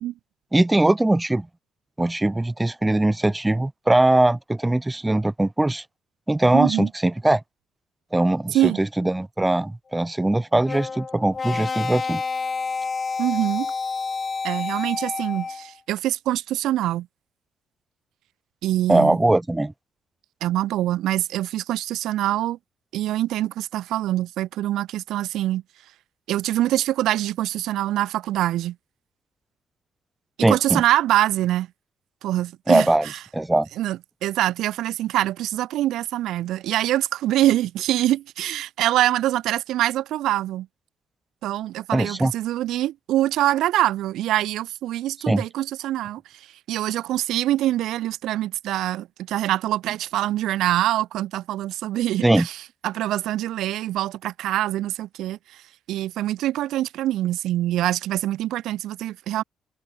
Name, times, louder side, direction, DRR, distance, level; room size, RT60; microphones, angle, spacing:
voice 1, 0.5-1.5 2.0-5.8 6.3-7.4 8.1-12.2 18.9-19.7 30.4-30.8 32.7-33.7 41.9-42.3 45.3-45.4 52.2-52.5, right 1 dB, 10° right, 1.4 m, -21 dB
voice 2, 6.5-6.9 8.5-8.8 13.2-13.7 14.4-17.1 18.6-19.2 20.4-22.6 22.9-25.6 26.3-28.7 30.5-31.7 32.2-33.2 33.8-40.7 41.4-55.6 55.9-59.4, right 14 dB, 85° right, 0.9 m, -24 dB
sound 1, 10.6-15.7, left 4 dB, 35° left, 3.1 m, -29 dB
open air
cardioid pair, 90°, 0 cm